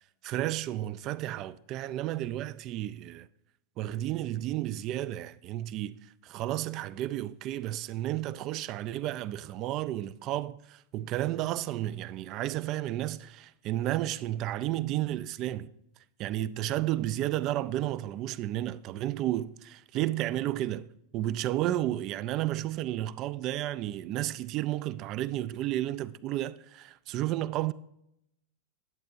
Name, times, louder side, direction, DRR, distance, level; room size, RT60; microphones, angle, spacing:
voice 1, 0.2-3.3 3.8-5.9 6.2-15.7 16.2-20.9 21.1-27.7, right 14 dB, 40° right, 0.3 m, -32 dB
11.0 x 8.2 x 2.6 m
figure-of-eight pair, 90°, 0 cm